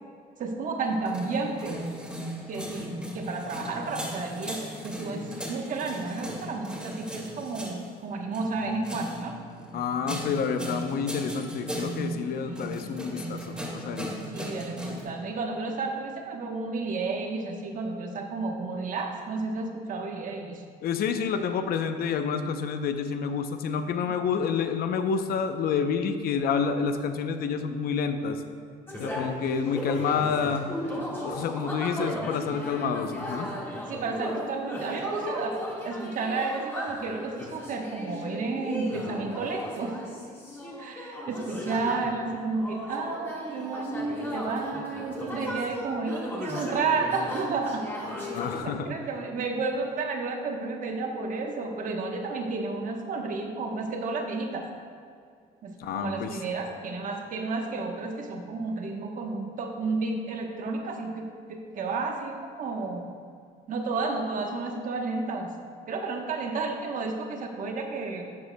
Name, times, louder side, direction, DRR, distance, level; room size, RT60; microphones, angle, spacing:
voice 1, 0.4-1.8 2.5-9.4 12.4-12.7 14.3-20.6 32.0-32.2 33.9-40.0 40.8-47.8 48.6-54.7 55.6-63.1 63.7-65.5 65.9-68.2, right 3 dB, 50° right, 3 dB, 1.1 m, -32 dB
sound 1, 0.9-15.0, equal, 5° right, 2.2 m, -37 dB
voice 2, 9.7-14.1 20.8-28.4 29.0-30.7 31.2-33.5 48.3-48.9 55.8-56.4, left 6 dB, 65° left, 8 dB, 0.7 m, -29 dB
sound 2, 28.9-48.6, left 1 dB, 15° left, 1.7 m, -36 dB
12.5 x 7.8 x 2.2 m, 2.3 s
cardioid pair, 110°, 17 cm